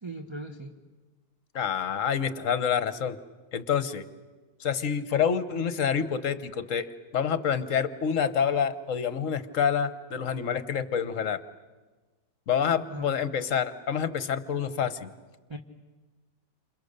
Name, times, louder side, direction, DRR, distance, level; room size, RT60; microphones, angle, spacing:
voice 1, 0.0-0.7 12.9-13.2 15.5-15.6, right 2 dB, 15° right, 2 dB, 1.2 m, -39 dB
voice 2, 1.5-3.2 3.5-4.0 4.6-11.4 12.5-15.1, left 7 dB, 50° left, 12 dB, 1.3 m, -27 dB
29.5 x 27.5 x 6.7 m, 1.3 s
omnidirectional pair, 1.9 m